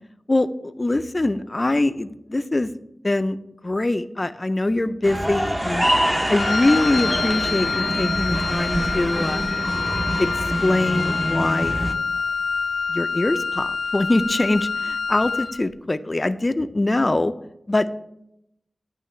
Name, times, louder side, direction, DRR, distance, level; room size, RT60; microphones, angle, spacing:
voice 1, 0.3-2.7 3.0-3.4 3.6-5.9 6.3-9.4 10.2-11.8 12.9-17.3 17.7-17.9, left 2 dB, 30° left, 11 dB, 0.3 m, -23 dB
sound 1, 5.0-11.9, equal, 15° right, 0.6 m, -25 dB
Wind instrument woodwind instrument, 6.4-15.6, left 5 dB, 85° left, 0.5 m, -26 dB
9.4 x 3.2 x 5.5 m, 0.81 s
wide cardioid pair, 100°, 0 cm